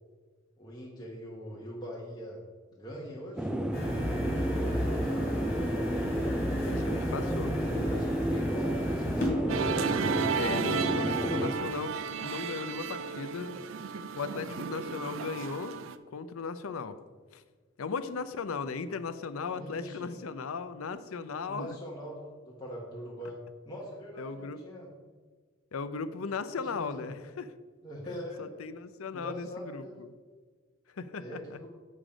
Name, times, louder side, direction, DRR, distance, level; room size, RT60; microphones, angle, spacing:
voice 1, 0.6-2.4 2.8-3.5 4.3-6.0 6.9-7.6 7.9-9.5 19.5-20.2 21.4-23.4 23.6-24.9 26.6-27.1 27.8-28.5 29.1-30.0 31.2-31.7, equal, 20° left, -5 dB, 1.3 m, -42 dB
sound 1, 3.4-11.6, right 1 dB, 5° right, 0.5 m, -31 dB
sound 2, 3.7-9.3, left 1 dB, 45° left, 2.5 m, -34 dB
voice 2, 6.6-7.5 10.3-13.6 14.2-15.8 16.1-17.0 17.3-17.4 17.8-21.8 24.2-24.6 25.7-27.5 28.1-30.1 30.9-31.6, left 5 dB, 80° left, 12 dB, 0.6 m, -37 dB
Musical instrument, 9.5-16.0, right 5 dB, 65° right, 0.4 m, -33 dB
7.4 x 6.5 x 5.0 m, 1.5 s
head